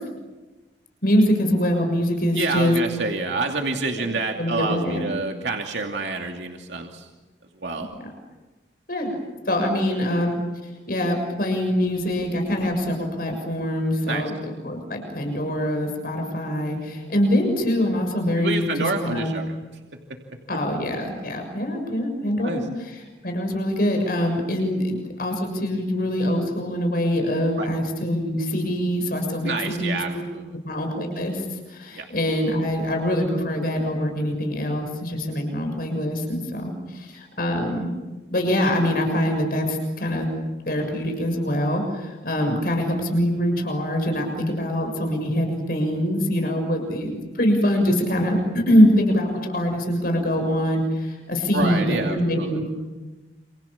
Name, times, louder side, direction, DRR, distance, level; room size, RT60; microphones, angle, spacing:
voice 1, 1.0-2.7 4.4-5.1 8.9-9.2 9.4-10.4 10.9-14.3 14.6-18.7 19.0-19.3 20.5-30.2 30.6-37.9 38.3-40.3 40.6-52.7, equal, 55° left, 4 dB, 6.7 m, -24 dB
voice 2, 2.3-7.1 7.6-7.9 14.1-14.2 18.4-19.6 22.4-22.6 27.6-27.7 29.4-30.4 31.9-32.0 51.5-52.6, right 3 dB, 90° right, 2 dB, 2.7 m, -28 dB
29.0 x 27.5 x 7.3 m, 1.2 s
head